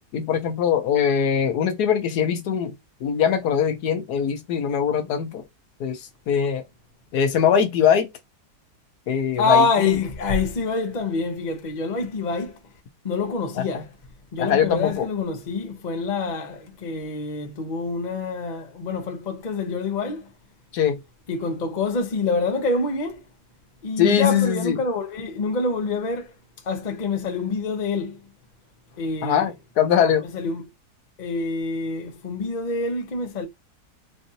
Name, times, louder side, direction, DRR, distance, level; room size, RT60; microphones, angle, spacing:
voice 1, 0.1-2.7 3.0-5.4 5.8-6.6 7.1-8.1 9.1-9.9 13.6-13.8 14.4-15.1 20.7-21.0 24.0-24.8 29.2-30.2, left 8 dB, 80° left, 1.3 m, -22 dB
voice 2, 9.4-12.6 13.0-13.9 14.3-20.3 21.3-23.2 23.8-26.3 26.6-28.2 29.0-29.5 30.3-30.6 31.2-33.5, left 4 dB, 35° left, 0.8 m, -26 dB
4.7 x 2.6 x 2.7 m
omnidirectional pair, 1.7 m